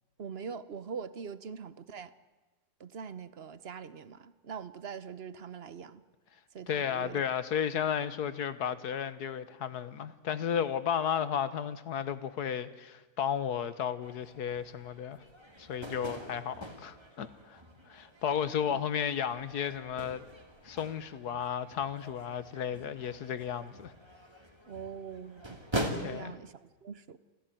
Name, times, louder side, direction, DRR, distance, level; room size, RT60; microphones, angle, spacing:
voice 1, 0.2-2.1 2.8-6.0 6.5-7.2 18.7-18.8 24.7-25.6 25.9-27.2, right 6 dB, 45° right, 1.0 m, -43 dB
voice 2, 6.7-15.2 15.6-17.6 17.9-20.2 20.6-23.9 26.0-26.3, left 8 dB, 80° left, 1.6 m, -33 dB
sound 1, 14.0-25.9, right 1 dB, 15° right, 2.5 m, -43 dB
27.0 x 15.5 x 9.2 m
omnidirectional pair, 1.7 m